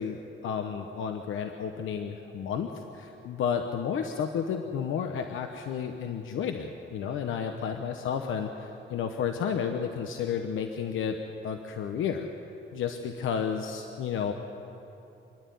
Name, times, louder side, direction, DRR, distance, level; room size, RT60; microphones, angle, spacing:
voice 1, 0.0-11.2 11.4-12.3 12.7-14.3, left 7 dB, 90° left, 5 dB, 1.1 m, -32 dB
27.0 x 10.5 x 9.4 m, 2.9 s
cardioid pair, 145°, 20 cm